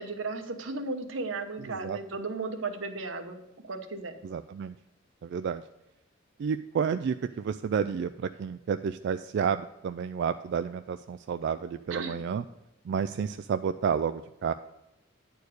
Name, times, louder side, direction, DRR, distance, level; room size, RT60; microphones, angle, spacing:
voice 1, 0.0-4.2 11.9-12.2, right 3 dB, 90° right, 7 dB, 1.0 m, -35 dB
voice 2, 1.6-2.0 4.2-4.7 5.2-5.6 6.4-12.4 12.8-14.5, right 7 dB, 60° right, 10 dB, 0.3 m, -30 dB
9.5 x 4.6 x 6.5 m, 0.92 s
head